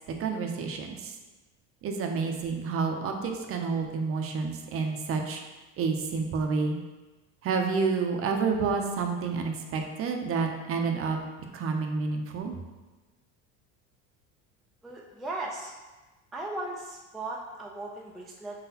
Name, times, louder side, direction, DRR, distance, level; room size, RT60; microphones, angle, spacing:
voice 1, 0.2-1.1 1.8-5.4 5.8-6.8 7.4-11.2 11.5-12.5, right 4 dB, 40° right, 3 dB, 0.6 m, -29 dB
voice 2, 14.8-15.7 16.3-18.6, right 2 dB, ahead, -3 dB, 0.3 m, -37 dB
4.9 x 3.9 x 2.8 m, 1.2 s
supercardioid pair, 120°, 36 cm